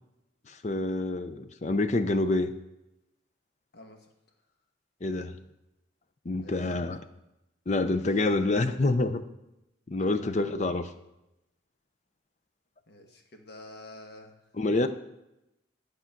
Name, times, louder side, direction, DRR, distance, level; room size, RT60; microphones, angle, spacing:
voice 1, 0.5-2.5 5.0-5.3 6.2-7.0 7.7-9.2 9.9-10.9 14.6-14.9, left 2 dB, 35° left, 10 dB, 0.5 m, -27 dB
voice 2, 3.7-4.1 6.4-6.8 10.0-10.4 12.9-14.4, left 1 dB, 55° left, 4 dB, 1.2 m, -48 dB
11.0 x 5.1 x 5.8 m, 0.91 s
head